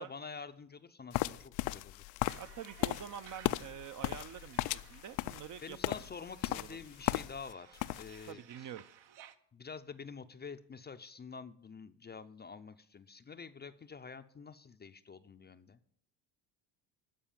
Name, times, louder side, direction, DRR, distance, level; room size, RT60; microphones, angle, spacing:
voice 1, 0.0-2.0 5.6-8.7 9.5-15.8, left 5 dB, 20° left, 10 dB, 0.5 m, -48 dB
sound 1, 1.1-7.5 7.8-8.3, left 18 dB, 80° left, 0.6 m, -36 dB
sound 2, 2.3-9.4, right 10 dB, 65° right, 1.0 m, -58 dB
voice 2, 2.4-5.9 6.5-6.9 8.3-8.8, right 9 dB, 40° right, 12 dB, 0.6 m, -47 dB
13.0 x 4.8 x 8.8 m, 0.64 s
supercardioid pair, 95°, 47 cm